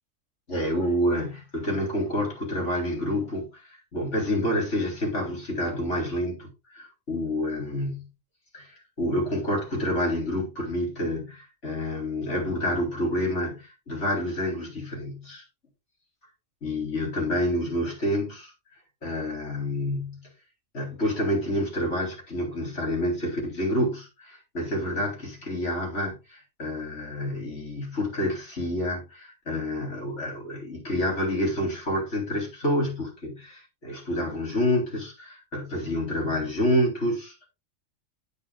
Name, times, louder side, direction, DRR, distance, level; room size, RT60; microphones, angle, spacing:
voice 1, 0.5-8.1 8.5-15.4 16.6-18.5 19.0-20.2 20.7-37.5, left 1 dB, 65° left, 4.2 m, -28 dB
9.6 x 8.9 x 2.4 m
omnidirectional pair, 1.3 m